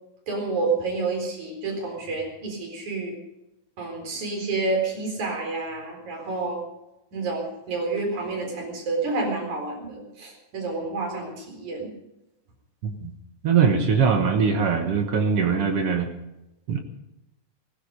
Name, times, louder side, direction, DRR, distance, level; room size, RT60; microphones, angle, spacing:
voice 1, 0.3-3.2 3.8-6.6 7.1-11.9, right 3 dB, 50° right, 1 dB, 5.4 m, -29 dB
voice 2, 13.4-16.1 16.7-16.8, right 6 dB, 65° right, 4 dB, 1.4 m, -21 dB
17.0 x 16.0 x 5.2 m, 0.91 s
omnidirectional pair, 4.4 m